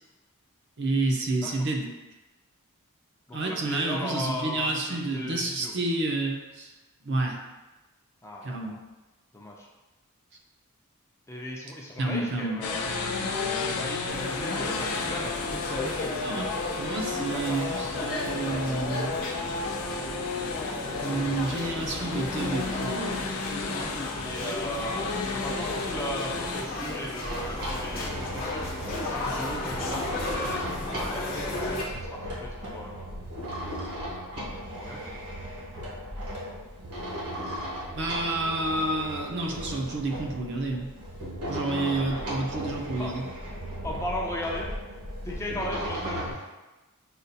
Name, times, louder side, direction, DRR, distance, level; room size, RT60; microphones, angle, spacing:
voice 1, 0.8-1.9 3.3-6.7 7.0-7.4 8.4-8.8 12.0-12.6 14.1-14.2 16.2-16.5 16.8-19.1 21.0-23.2 37.9-40.9 41.5-43.2, right 2 dB, 55° right, 1 dB, 0.6 m, -29 dB
voice 2, 3.3-5.7 8.2-8.8 9.3-9.7 11.3-15.4 17.3-17.9 21.1-21.4 24.2-28.7 29.1-30.6 31.0-33.0 34.7-35.0 42.9-43.2 43.8-44.7 45.2-46.5, left 1 dB, 15° left, -2 dB, 0.4 m, -37 dB
sound 1, 12.6-26.6, left 4 dB, 80° left, 0.5 m, -33 dB
sound 2, 14.1-31.8, left 2 dB, 40° left, 0.8 m, -34 dB
sound 3, 27.2-46.3, equal, 85° right, 1.2 m, -36 dB
6.5 x 2.4 x 2.7 m, 1.1 s
head